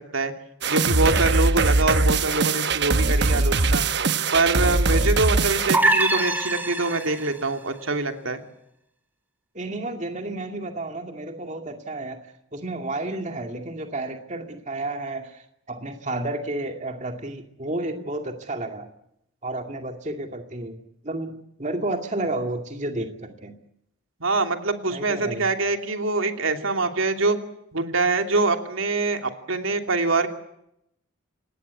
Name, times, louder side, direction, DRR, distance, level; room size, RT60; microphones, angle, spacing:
sound 1, 0.6-5.8, right 3 dB, 55° right, 1.1 m, -21 dB
voice 1, 0.7-3.8 4.3-8.4 24.2-27.4 27.7-30.3, right 3 dB, 90° right, 5 dB, 2.9 m, -24 dB
sound 2, 5.7-7.4, right 2 dB, 10° right, 3.0 m, -23 dB
voice 2, 9.5-12.2 12.5-18.9 19.4-20.8 21.0-23.6 24.9-25.5, right 2 dB, 35° right, 5 dB, 2.3 m, -31 dB
27.0 x 20.0 x 8.3 m, 0.79 s
head